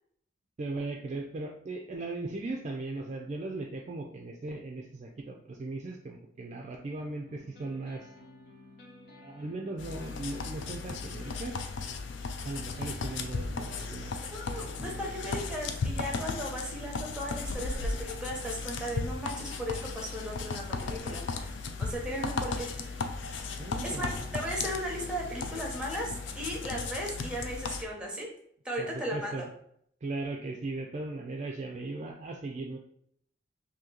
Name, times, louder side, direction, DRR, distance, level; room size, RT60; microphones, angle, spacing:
voice 1, 0.6-8.1 9.1-11.6 12.4-15.1 23.6-24.3 28.8-29.5 30.0-32.8, right 2 dB, 40° right, 2 dB, 0.4 m, -38 dB
sound 1, 7.0-26.5, left 2 dB, 60° left, 0.9 m, -53 dB
sound 2, 9.8-27.8, left 4 dB, 75° left, 0.4 m, -36 dB
voice 2, 14.3-22.7 23.8-28.3 28.6-29.5, equal, 5° right, 0 dB, 0.8 m, -36 dB
2.9 x 2.7 x 3.7 m, 0.68 s
head